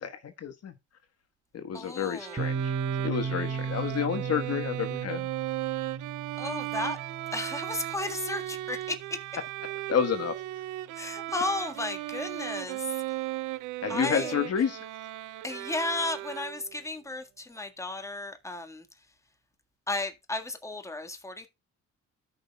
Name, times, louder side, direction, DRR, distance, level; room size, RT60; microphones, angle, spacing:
voice 1, 0.0-0.7 1.5-2.7 3.0-5.3 9.9-10.3 13.8-14.8, left 8 dB, 55° left, 1.3 m, -30 dB
voice 2, 1.7-2.5 6.4-7.0 7.3-9.2 10.9-12.9 13.9-14.3 15.4-18.9 19.9-21.5, left 2 dB, 10° left, 1.6 m, -34 dB
Bowed string instrument, 2.2-16.8, right 17 dB, 85° right, 0.5 m, -36 dB
Piano, 2.4-9.8, right 5 dB, 20° right, 1.3 m, -36 dB
13.5 x 5.6 x 2.2 m
cardioid pair, 90°, 30 cm